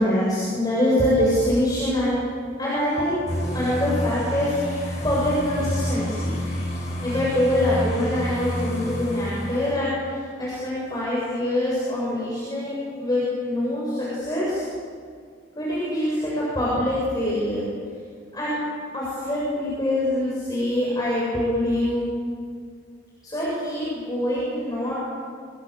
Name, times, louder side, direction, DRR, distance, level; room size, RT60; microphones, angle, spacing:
voice 1, 0.0-2.2 2.6-6.4 7.0-14.7 15.6-17.7 18.3-18.6 18.9-22.0 23.2-25.0, left 1 dB, 20° left, -7 dB, 7.6 m, -24 dB
sound 1, 3.3-9.7, left 1 dB, 40° left, 8.0 m, -29 dB
28.5 x 23.0 x 6.9 m, 2.1 s
head